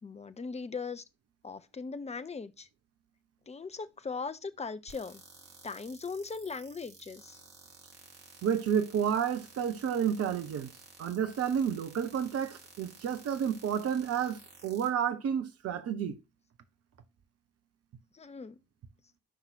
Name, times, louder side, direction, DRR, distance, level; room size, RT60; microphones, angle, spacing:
voice 1, 0.0-1.0 1.4-2.7 3.5-5.2 5.6-7.4 18.1-18.6, left 4 dB, 20° left, 0.8 m, -39 dB
sound 1, 4.9-14.9, right 3 dB, 70° right, 2.0 m, -54 dB
voice 2, 8.4-10.7 11.0-16.2, right 8 dB, 50° right, 1.1 m, -30 dB
11.5 x 5.8 x 2.9 m
figure-of-eight pair, 40°, 31 cm